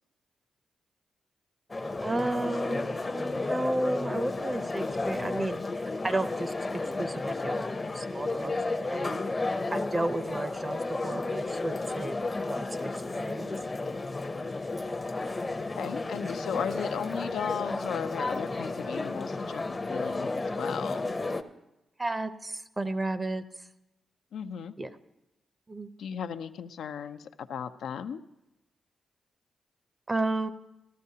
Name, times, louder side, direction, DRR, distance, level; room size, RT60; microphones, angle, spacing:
sound 1, 1.7-21.4, left 2 dB, 30° left, 0.6 m, -32 dB
voice 1, 2.0-7.7 7.9-9.1 9.7-12.2 12.5-13.5 17.7-17.8 22.0-23.4 24.8-24.9 25.7-25.9 30.1-30.5, right 2 dB, 25° right, 11 dB, 0.5 m, -33 dB
voice 2, 15.8-21.1 24.3-24.7 26.0-28.2, left 7 dB, 85° left, 10 dB, 0.4 m, -36 dB
14.0 x 13.0 x 2.8 m, 0.93 s
cardioid pair, 75°, 0 cm